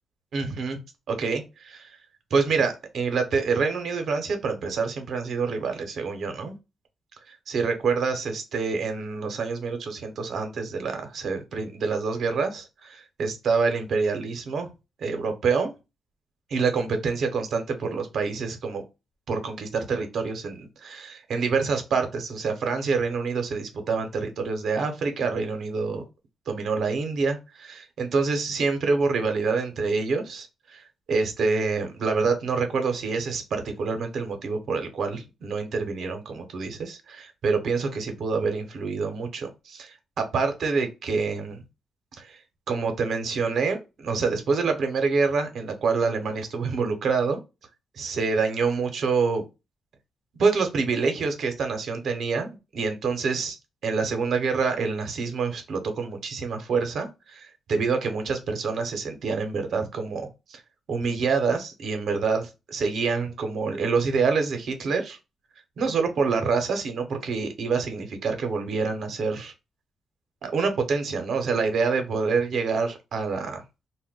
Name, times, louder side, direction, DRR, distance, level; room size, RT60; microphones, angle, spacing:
voice 1, 0.3-0.8 1.1-2.0 2.3-6.6 7.3-14.7 15.0-15.7 16.5-18.8 19.3-26.0 26.5-41.6 42.2-42.4 42.7-47.4 47.9-49.5 50.4-53.6 53.8-60.6 60.9-65.2 65.8-69.5 70.4-73.6, right 4 dB, 70° right, 0.6 m, -27 dB
2.1 x 2.1 x 3.5 m
cardioid pair, 95°, 0 cm